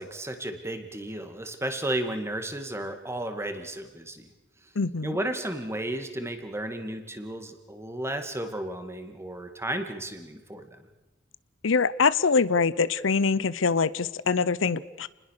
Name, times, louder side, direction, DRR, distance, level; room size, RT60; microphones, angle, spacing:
voice 1, 0.0-4.3 5.0-10.9, right 1 dB, 15° right, 7 dB, 2.3 m, -33 dB
voice 2, 4.8-5.2 11.6-15.1, left 5 dB, 85° left, 18 dB, 0.7 m, -24 dB
29.0 x 20.5 x 6.7 m, 1.1 s
head